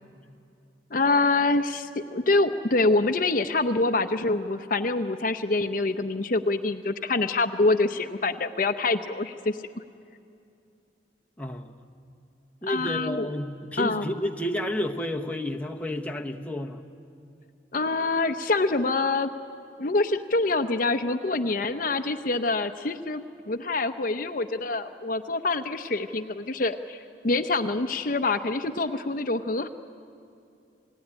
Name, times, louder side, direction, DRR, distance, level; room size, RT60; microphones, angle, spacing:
voice 1, 0.9-9.6 12.7-13.3 13.8-14.1 17.7-19.3 19.8-29.7, left 3 dB, 50° left, 8 dB, 0.8 m, -25 dB
voice 2, 11.4-11.8 12.6-16.8, left 1 dB, 10° left, 2 dB, 1.1 m, -31 dB
28.0 x 17.5 x 10.0 m, 2.5 s
head